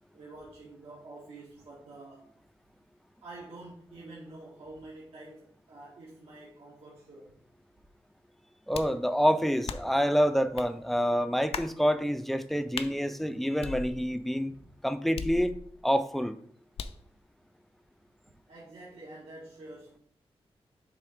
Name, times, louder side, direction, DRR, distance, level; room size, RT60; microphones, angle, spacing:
voice 1, 0.1-2.3 3.2-7.3 14.5-14.6 18.5-20.0, right 2 dB, 80° right, -6 dB, 1.4 m, -48 dB
sound 1, 8.7-9.0 9.7-10.0 10.6-10.7 11.5-11.8 12.7-12.9 13.6-14.3 15.2-15.8 16.8-17.1, left 6 dB, 75° left, 0.4 m, -38 dB
voice 2, 8.7-14.5 14.8-15.5 15.8-16.4, equal, ahead, 11 dB, 0.3 m, -27 dB
6.6 x 3.4 x 4.9 m, 0.66 s
wide cardioid pair, 165°, 10 cm